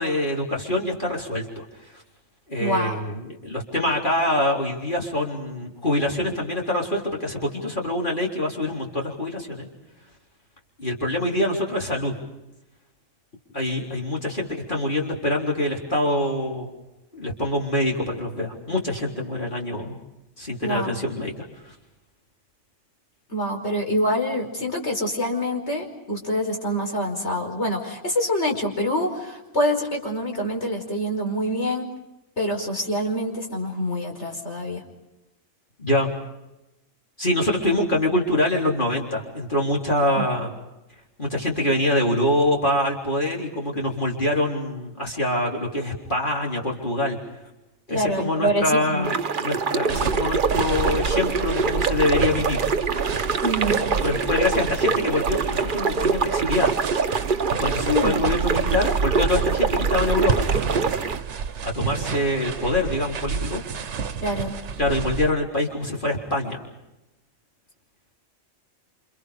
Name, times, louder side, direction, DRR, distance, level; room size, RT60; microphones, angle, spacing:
voice 1, 0.0-1.6 1.9-2.0 2.5-9.7 10.8-12.2 13.5-16.7 17.1-20.0 20.4-21.3 35.8-36.1 37.2-40.5 41.2-47.2 47.9-49.1 49.4-52.6 54.0-57.2 57.6-60.5 61.6-63.6 64.8-66.6, left 1 dB, 40° left, -1 dB, 4.1 m, -25 dB
voice 2, 2.6-3.1 20.6-20.9 23.3-31.9 32.4-34.8 40.2-40.3 47.9-49.1 53.4-53.8 57.8-58.2 64.2-64.6, equal, 65° left, 2 dB, 5.5 m, -26 dB
sound 1, 49.0-61.2, right 5 dB, 45° right, 1.1 m, -25 dB
sound 2, 49.9-65.3, right 6 dB, 70° right, 1.3 m, -29 dB
29.0 x 28.0 x 5.2 m, 0.96 s
omnidirectional pair, 1.3 m